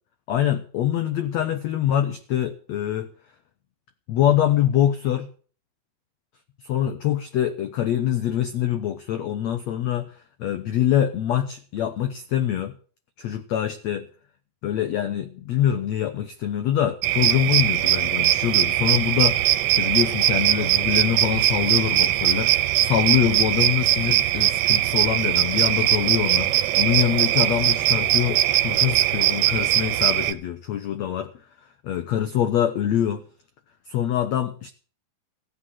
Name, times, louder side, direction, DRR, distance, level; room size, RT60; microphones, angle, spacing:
voice 1, 0.3-3.1 4.1-5.3 6.6-12.7 13.2-14.1 14.6-31.3 31.9-33.2 33.9-34.7, left 11 dB, 80° left, 1.5 m, -24 dB
sound 1, 17.0-30.3, right 14 dB, 80° right, 2.7 m, -21 dB
15.5 x 8.8 x 7.5 m
omnidirectional pair, 4.4 m